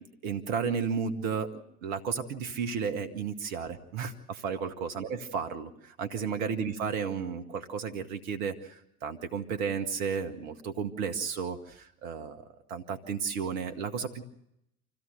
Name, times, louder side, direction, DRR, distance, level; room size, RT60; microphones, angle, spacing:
voice 1, 0.2-14.2, right 6 dB, 70° right, 7 dB, 1.9 m, -33 dB
25.5 x 16.0 x 6.8 m, 0.77 s
hypercardioid pair, 70°, 43 cm